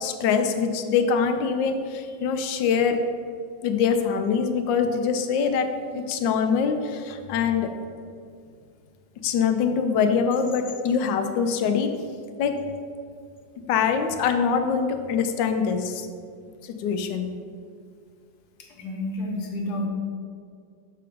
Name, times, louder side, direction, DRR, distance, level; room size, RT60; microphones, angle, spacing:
voice 1, 0.0-3.0 3.6-5.7 5.9-7.7 9.2-11.9 12.4-12.6 13.7-16.1 16.6-17.3, left 6 dB, 80° left, 7 dB, 1.3 m, -24 dB
voice 2, 18.8-19.9, left 1 dB, 65° left, 0 dB, 1.5 m, -30 dB
6.7 x 3.8 x 5.1 m, 2.2 s
omnidirectional pair, 2.0 m